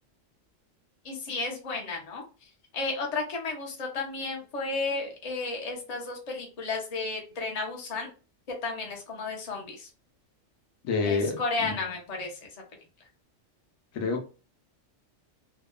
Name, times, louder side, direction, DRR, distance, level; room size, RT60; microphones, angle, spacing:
voice 1, 1.0-8.1 8.5-9.9 11.0-12.4, left 3 dB, 35° left, 0.7 m, -33 dB
voice 2, 10.8-11.4 13.9-14.3, left 4 dB, 85° left, 1.1 m, -27 dB
2.7 x 2.2 x 2.2 m
omnidirectional pair, 1.4 m